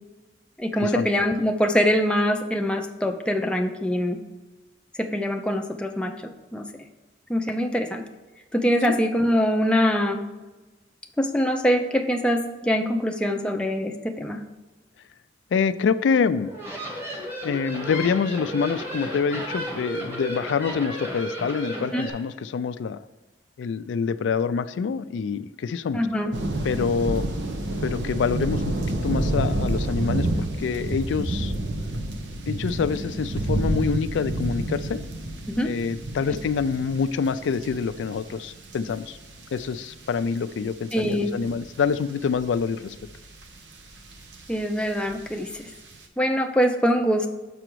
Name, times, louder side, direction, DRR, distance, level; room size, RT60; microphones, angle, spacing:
voice 1, 0.6-4.2 5.0-6.1 6.5-6.7 7.3-8.1 8.5-10.2 11.2-14.4 21.9-22.1 25.9-26.3 35.5-35.7 36.3-36.4 40.9-41.3 44.5-45.7 46.2-47.3, equal, 5° left, 4 dB, 0.4 m, -23 dB
voice 2, 15.5-16.5 17.4-23.0 23.6-26.0 26.6-27.2 27.8-30.3 30.6-31.5 32.5-35.0 35.6-39.2 39.5-43.0, left 5 dB, 85° left, 13 dB, 0.3 m, -26 dB
sound 1, 16.4-22.1, equal, 15° right, 1.5 m, -33 dB
sound 2, 26.3-40.1 40.4-41.1 41.4-45.9, right 1 dB, 75° right, 0.8 m, -29 dB
6.9 x 5.0 x 4.6 m, 1.2 s
head